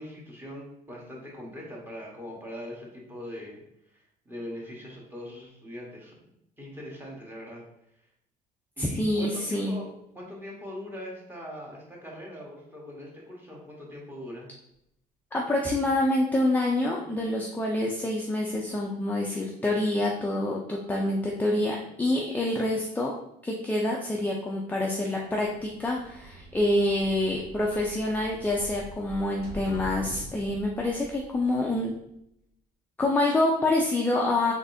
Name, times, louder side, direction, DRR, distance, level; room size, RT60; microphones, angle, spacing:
voice 1, 0.0-3.6 3.9-6.2 6.6-7.6 8.8-9.9 10.1-14.5, equal, 10° right, -3 dB, 1.3 m, -41 dB
voice 2, 8.8-9.8 15.3-23.1 23.4-31.9 33.0-34.5, left 1 dB, 10° left, -2 dB, 0.5 m, -27 dB
sound 1, 25.3-32.1, right 1 dB, 65° right, 1.1 m, -44 dB
3.8 x 3.5 x 2.7 m, 0.78 s
cardioid pair, 110°, 17 cm